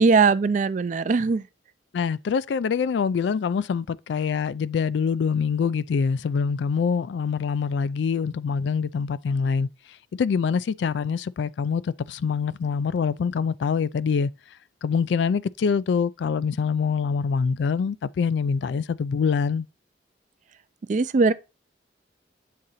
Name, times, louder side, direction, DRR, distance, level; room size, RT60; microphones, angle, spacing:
voice 1, 0.0-1.5 20.9-21.3, right 4 dB, 40° right, 0.4 m, -20 dB
voice 2, 1.9-9.7 10.1-14.3 14.8-19.7, left 6 dB, 70° left, 0.3 m, -25 dB
7.6 x 3.8 x 4.0 m
head